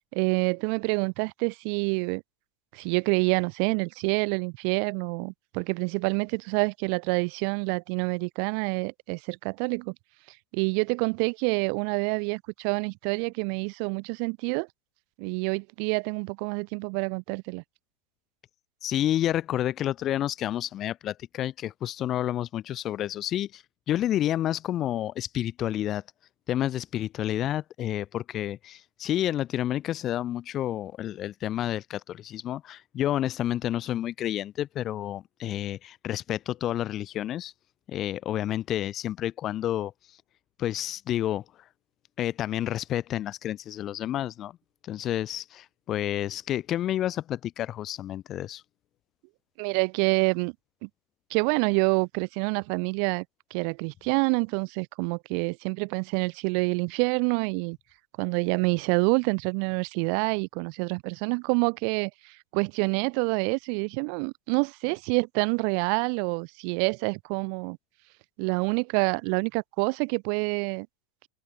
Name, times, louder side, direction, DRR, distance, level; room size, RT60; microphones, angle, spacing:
voice 1, 0.1-2.2 2.7-9.9 10.3-14.7 15.2-17.6 49.6-50.5 50.8-50.9 51.3-53.2 53.5-57.8 58.2-67.8 68.4-70.9, right 40 dB or more, 45° right, 0.5 m, -27 dB
voice 2, 18.8-23.6 23.9-26.0 26.5-37.5 37.9-39.9 40.6-41.4 42.2-44.6 44.8-48.6, left 12 dB, 30° left, 0.9 m, -30 dB
figure-of-eight pair, 90°, 0 cm